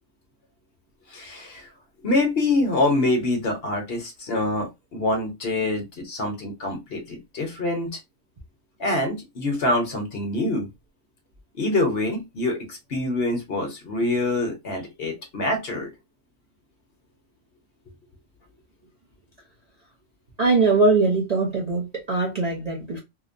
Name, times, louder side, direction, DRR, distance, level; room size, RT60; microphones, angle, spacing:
voice 1, 1.1-1.7 2.0-8.0 8.8-10.7 11.5-15.9, left 2 dB, 55° left, 0.9 m, -25 dB
voice 2, 20.4-23.0, right 3 dB, 45° right, 0.6 m, -21 dB
2.8 x 2.1 x 2.5 m
omnidirectional pair, 1.4 m